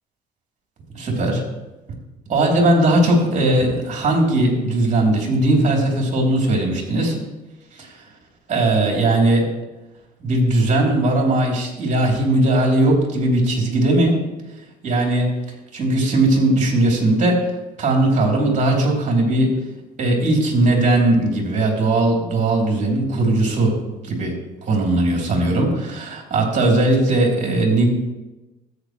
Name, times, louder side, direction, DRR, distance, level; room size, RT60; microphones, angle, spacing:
voice 1, 0.9-1.4 2.3-7.2 8.5-9.5 10.2-14.2 14.8-15.3 15.7-17.4 17.8-19.5 20.0-23.7 24.0-24.3 24.6-27.9, right 2 dB, 45° right, -1 dB, 3.2 m, -18 dB
13.5 x 8.6 x 3.1 m, 1.1 s
cardioid pair, 110°, 17 cm